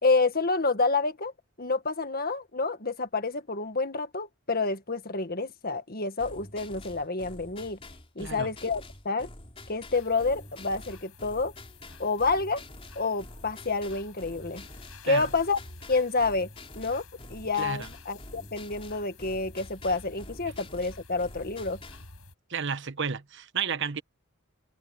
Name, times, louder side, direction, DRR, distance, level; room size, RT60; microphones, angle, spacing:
voice 1, 0.0-1.3 1.6-7.8 8.2-9.3 9.7-11.5 12.0-12.6 13.0-14.6 15.0-15.6 15.9-16.5 16.8-17.0 17.3-21.8, left 3 dB, 45° left, 1.9 m, -28 dB
sound 1, 6.2-22.1, left 1 dB, 25° left, 4.1 m, -47 dB
voice 2, 8.2-8.5 15.1-15.3 17.6-17.9 22.5-24.0, right 6 dB, 60° right, 1.2 m, -32 dB
sound 2, 9.9-22.3, left 3 dB, 90° left, 7.8 m, -51 dB
head